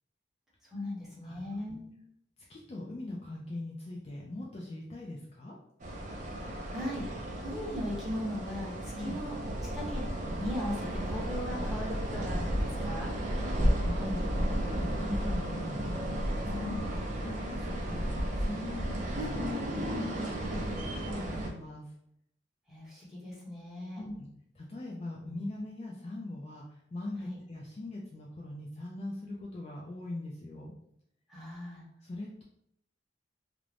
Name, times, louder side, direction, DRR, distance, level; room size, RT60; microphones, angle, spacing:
voice 1, 0.7-1.9 6.3-7.1 7.4-9.3 9.7-10.1 10.3-13.1 16.4-17.1 22.7-24.0 27.2-27.4 31.3-31.8, left 1 dB, ahead, -7 dB, 0.9 m, -38 dB
voice 2, 2.5-5.6 9.0-9.2 13.6-14.2 14.5-16.2 16.6-16.9 17.2-21.8 24.0-24.3 24.5-30.7 32.0-32.4, left 2 dB, 30° left, -2 dB, 0.3 m, -41 dB
sound 1, 5.8-21.5, right 1 dB, 40° right, 0.4 m, -33 dB
2.5 x 2.1 x 3.2 m, 0.73 s
head